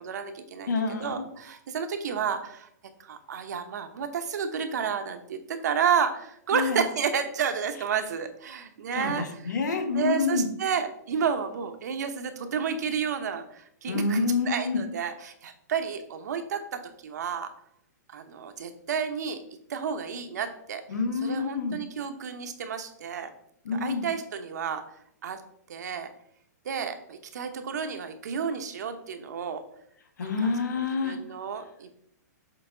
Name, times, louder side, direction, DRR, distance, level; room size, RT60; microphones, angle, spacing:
voice 1, 0.0-2.7 3.0-9.5 9.9-14.2 14.5-17.5 18.1-19.4 19.7-20.8 21.2-23.3 23.7-24.8 25.2-25.4 25.7-26.1 26.6-29.6 30.2-30.5 31.0-31.9, right 7 dB, 70° right, 7 dB, 1.0 m, -31 dB
voice 2, 0.7-1.2 6.5-6.8 8.9-10.5 13.8-14.8 20.9-21.8 23.6-24.1 30.2-31.2, left 4 dB, 85° left, 5 dB, 1.5 m, -27 dB
6.7 x 4.0 x 3.9 m, 0.70 s
hypercardioid pair, 160°, 9 cm